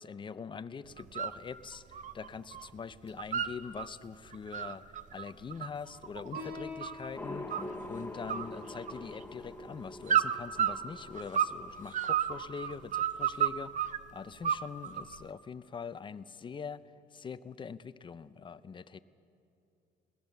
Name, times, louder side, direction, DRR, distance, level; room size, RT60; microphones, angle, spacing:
voice 1, 0.0-4.8 5.1-7.6 7.8-16.8 17.1-19.0, left 6 dB, 30° left, 14 dB, 0.6 m, -43 dB
sound 1, 1.0-1.4 1.7-2.7 2.9-3.9 4.3-7.1 7.5-8.0 8.3-9.3 10.1-11.6 11.9-14.0 14.4-15.2, right 9 dB, 45° right, 0.7 m, -31 dB
Piano, 6.3-13.4, left 4 dB, 65° right, 5.7 m, -50 dB
sound 2, 7.2-13.0, left 1 dB, 10° left, 1.1 m, -45 dB
21.0 x 18.0 x 7.0 m, 2.7 s
cardioid pair, 110°, 17 cm